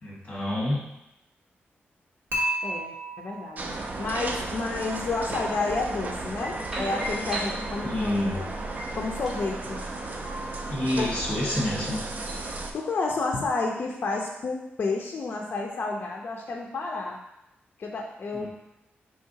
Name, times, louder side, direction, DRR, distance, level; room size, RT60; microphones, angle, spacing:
voice 1, 0.0-0.8 7.8-8.4 10.7-12.0 18.3-18.5, left 1 dB, 35° left, -4 dB, 1.4 m, -28 dB
Dishes pots and pans / Chink clink, 2.3-4.4, right 1 dB, 65° right, 1.1 m, -32 dB
voice 2, 2.6-3.6 4.0-8.5 8.9-9.8 11.0-11.2 12.7-17.2 17.8-18.5, left 3 dB, 50° left, 0 dB, 0.5 m, -30 dB
sound 1, 3.6-12.7, right 2 dB, 45° right, 0.4 m, -34 dB
sound 2, 6.4-8.1 8.7-12.5, right 1 dB, 15° right, 1.0 m, -39 dB
4.8 x 3.1 x 2.7 m, 0.88 s
wide cardioid pair, 135°, 4 cm